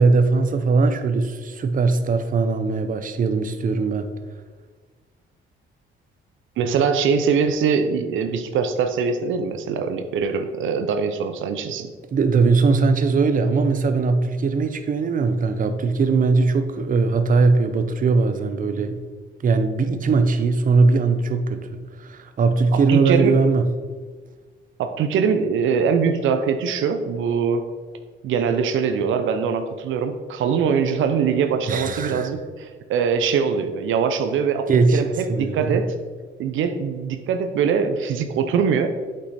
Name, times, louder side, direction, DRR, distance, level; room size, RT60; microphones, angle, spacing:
voice 1, 0.0-4.1 12.1-19.0 19.4-23.7 31.7-32.3 34.7-35.8, right 4 dB, 45° right, 9 dB, 0.7 m, -20 dB
voice 2, 6.6-11.9 22.7-23.3 24.8-27.6 28.2-35.9 36.4-38.9, right 6 dB, 80° right, 7 dB, 0.6 m, -22 dB
8.3 x 5.4 x 4.2 m, 1.5 s
cardioid pair, 90°, 20 cm